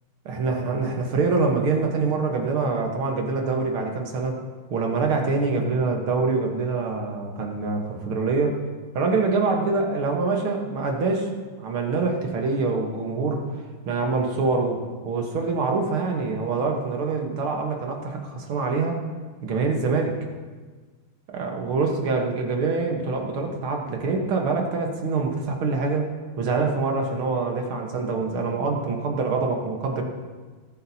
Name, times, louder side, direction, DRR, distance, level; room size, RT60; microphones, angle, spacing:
voice 1, 0.3-4.4 4.7-8.6 8.9-11.3 11.6-13.5 13.9-14.8 15.1-19.0 19.4-20.2 21.3-26.1 26.4-30.0, right 4 dB, 75° right, 1 dB, 2.2 m, -25 dB
18.5 x 10.0 x 2.8 m, 1.4 s
omnidirectional pair, 2.4 m